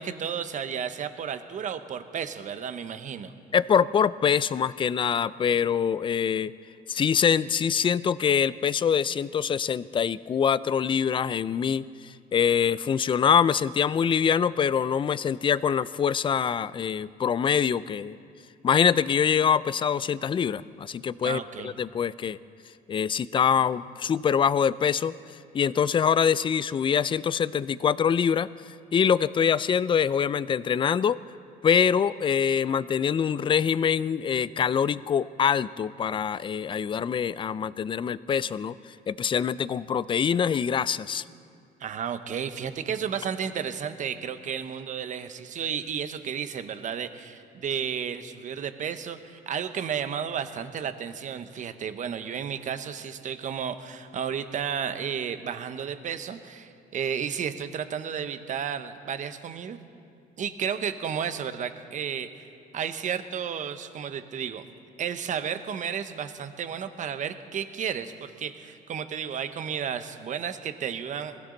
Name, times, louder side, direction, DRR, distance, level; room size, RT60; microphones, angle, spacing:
voice 1, 0.0-3.3 21.2-21.7 41.8-59.8 60.4-62.5 62.7-64.7 65.0-71.4, right 7 dB, 50° right, 10 dB, 1.0 m, -32 dB
voice 2, 3.5-6.5 6.9-18.2 18.6-22.4 22.9-25.2 25.5-28.5 28.9-31.2 31.6-41.2, left 7 dB, 30° left, 18 dB, 0.4 m, -24 dB
21.0 x 16.0 x 3.9 m, 2.4 s
cardioid pair, 110°, 17 cm